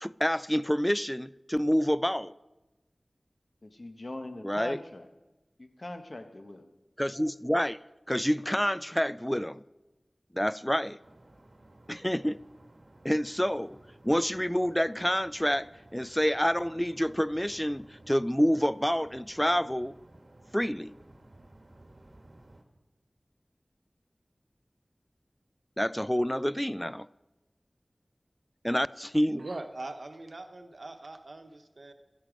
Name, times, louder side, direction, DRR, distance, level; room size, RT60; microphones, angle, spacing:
voice 1, 0.0-2.3 4.4-4.8 7.0-7.8 8.1-9.6 10.3-11.0 11.9-12.4 13.0-13.8 14.0-19.9 20.5-21.0 25.8-27.1 28.6-29.4, equal, 10° left, 0.3 m, -28 dB
voice 2, 3.6-5.1 5.6-6.7, left 2 dB, 55° left, 1.3 m, -41 dB
sound 1, 11.0-22.6, right 1 dB, 55° right, 1.4 m, -56 dB
voice 3, 29.4-31.9, right 2 dB, 70° right, 0.9 m, -41 dB
13.0 x 11.0 x 5.1 m
wide cardioid pair, 40°, 0 cm